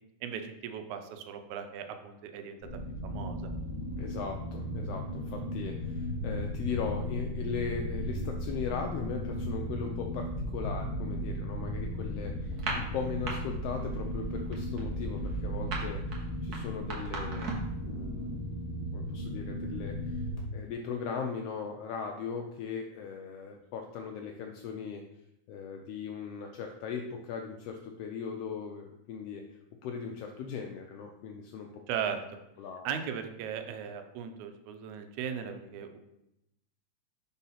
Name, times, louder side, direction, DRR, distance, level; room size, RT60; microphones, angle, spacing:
voice 1, 0.2-2.6 3.0-3.5 31.9-32.2 32.8-36.0, right 7 dB, 85° right, 7 dB, 2.0 m, -37 dB
sound 1, 2.6-20.4, equal, 30° left, 0.6 m, -36 dB
voice 2, 4.0-18.4 18.9-20.3 20.5-25.0 25.5-29.4 29.8-31.7 32.6-32.9, left 6 dB, 85° left, 3 dB, 1.3 m, -38 dB
sound 2, 12.5-13.3 13.7-14.0 14.2-17.8, right 3 dB, 60° right, 1.0 m, -37 dB
4.5 x 4.1 x 5.6 m, 0.85 s
omnidirectional pair, 3.3 m